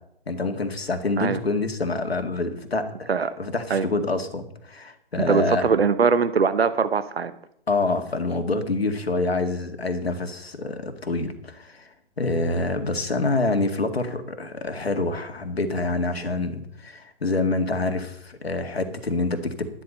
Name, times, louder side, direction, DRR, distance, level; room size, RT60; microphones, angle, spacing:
voice 1, 0.3-5.7 7.7-19.7, left 3 dB, 80° left, 6 dB, 2.1 m, -26 dB
voice 2, 5.3-7.3, right 5 dB, 75° right, 13 dB, 1.0 m, -21 dB
12.5 x 11.5 x 5.5 m, 0.74 s
figure-of-eight pair, 130°, 30 cm